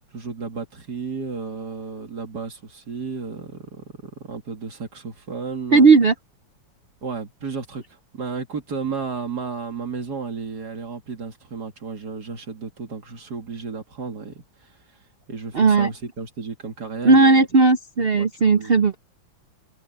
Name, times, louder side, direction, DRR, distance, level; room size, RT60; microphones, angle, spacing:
voice 1, 0.1-5.9 7.0-14.7 15.3-17.4 18.2-18.9, right 5 dB, 55° right, 2.9 m, -33 dB
voice 2, 5.7-6.1 15.5-15.9 17.0-19.0, right 4 dB, 70° right, 0.5 m, -15 dB
omnidirectional pair, 2.1 m